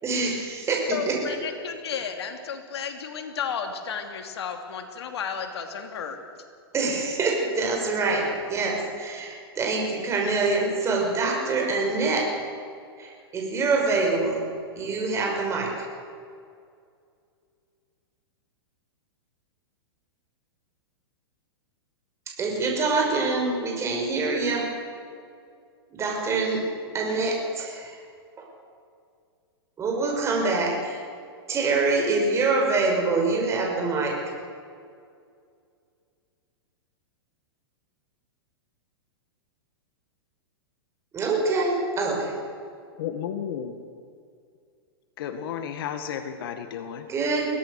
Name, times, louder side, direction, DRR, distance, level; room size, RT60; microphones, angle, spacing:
voice 1, 0.0-1.1 6.7-12.2 13.0-14.4 14.7-15.9 22.4-24.7 25.9-26.6 26.9-28.0 28.4-28.5 29.8-31.0 31.5-34.2 41.1-42.3 47.1-47.5, right 3 dB, 20° right, 0 dB, 5.7 m, -25 dB
voice 2, 0.9-6.2, left 6 dB, 75° left, 5 dB, 2.8 m, -33 dB
voice 3, 43.0-43.8 45.2-47.1, left 8 dB, 60° left, 8 dB, 1.8 m, -33 dB
22.5 x 17.5 x 6.6 m, 2.3 s
hypercardioid pair, 135°, 14 cm